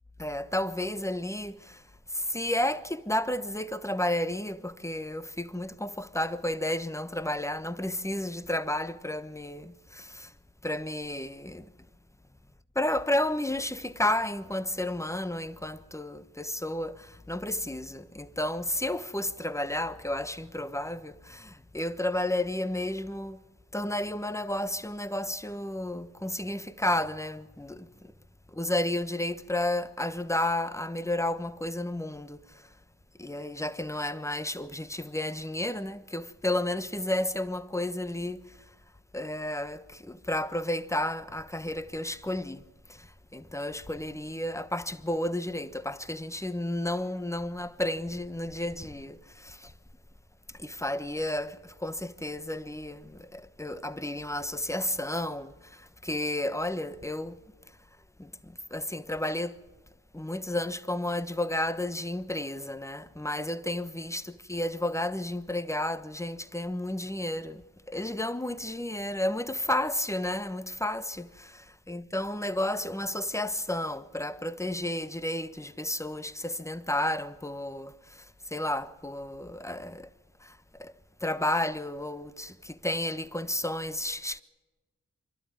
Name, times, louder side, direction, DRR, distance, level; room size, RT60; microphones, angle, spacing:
voice 1, 0.2-1.6 2.2-10.3 10.6-11.6 12.8-23.4 23.7-27.9 28.6-32.4 33.2-38.4 39.1-42.6 43.3-49.2 49.4-49.7 50.6-51.6 51.8-55.5 56.0-57.3 58.2-58.3 58.7-59.5 60.1-64.2 64.5-67.6 67.9-71.5 71.9-77.9 78.5-80.1 80.8-80.9 81.2-84.4, left 1 dB, 10° left, 1.1 m, -32 dB
25.0 x 12.0 x 9.5 m
cardioid pair, 40°, 33 cm